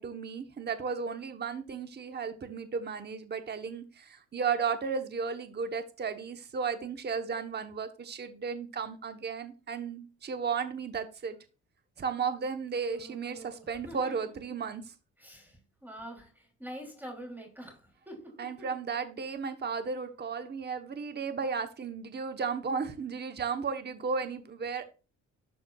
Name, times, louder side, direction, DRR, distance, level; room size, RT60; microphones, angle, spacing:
voice 1, 0.0-11.4 12.0-14.8 18.4-24.8, right 5 dB, 35° right, 1.0 m, -34 dB
voice 2, 12.8-14.3 15.2-18.7, right 1 dB, 5° right, 2.9 m, -46 dB
12.5 x 4.3 x 2.3 m
cardioid pair, 90°, 30 cm